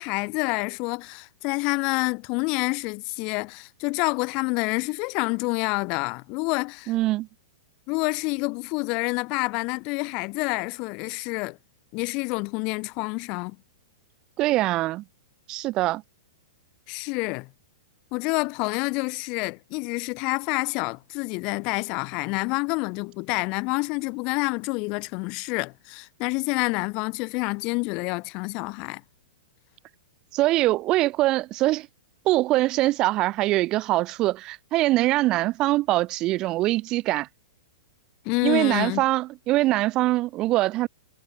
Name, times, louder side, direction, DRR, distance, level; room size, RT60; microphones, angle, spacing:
voice 1, 0.0-6.9 7.9-11.6 11.9-13.6 16.9-17.5 18.1-29.0 38.2-39.0, left 29 dB, 35° left, 0.8 m, -28 dB
voice 2, 6.9-7.3 14.4-15.0 15.5-16.0 30.3-31.9 32.2-37.3 38.4-40.9, right 17 dB, 30° right, 1.5 m, -23 dB
figure-of-eight pair, 105°, 2 cm